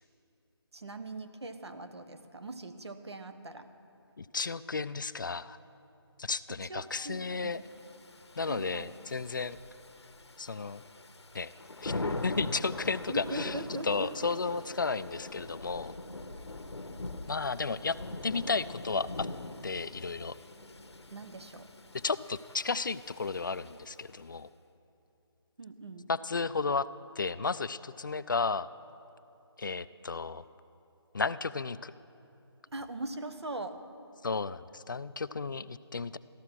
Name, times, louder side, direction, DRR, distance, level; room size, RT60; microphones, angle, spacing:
voice 1, 0.7-3.7 6.5-7.6 8.4-8.9 13.1-14.3 21.1-21.7 25.6-26.1 32.7-33.8, right 2 dB, 75° right, 8 dB, 1.3 m, -41 dB
voice 2, 4.2-5.6 6.2-7.6 8.4-9.6 10.4-10.8 11.3-11.5 11.8-13.6 13.8-15.9 17.3-18.0 18.2-19.3 19.6-20.4 22.0-24.5 26.1-26.9 27.2-28.7 29.6-30.4 31.1-31.9 34.2-36.2, left 4 dB, 50° left, 15 dB, 0.4 m, -33 dB
Thunder / Rain, 7.5-24.1, left 2 dB, 85° left, 1.0 m, -42 dB
14.5 x 13.0 x 6.1 m, 2.8 s
figure-of-eight pair, 165°, 14 cm